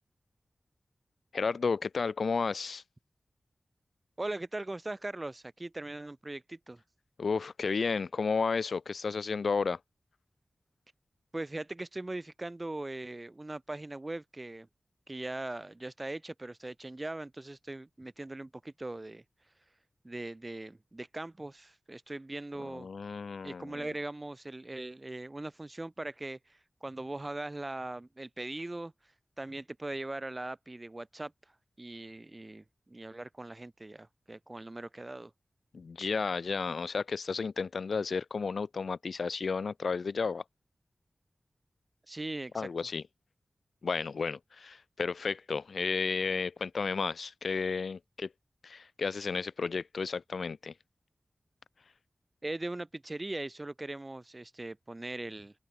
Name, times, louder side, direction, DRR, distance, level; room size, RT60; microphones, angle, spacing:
voice 1, 1.3-2.8 7.2-9.8 22.6-23.8 35.7-40.4 42.5-43.0 43.8-48.3 48.6-50.7, left 5 dB, 80° left, 0.4 m, -32 dB
voice 2, 4.2-6.8 11.3-14.7 15.1-19.2 20.0-22.9 23.4-28.9 29.4-31.3 31.8-35.3 42.1-42.7 52.4-55.5, right 2 dB, 30° right, 3.1 m, -40 dB
open air
wide cardioid pair, 70°, 0 cm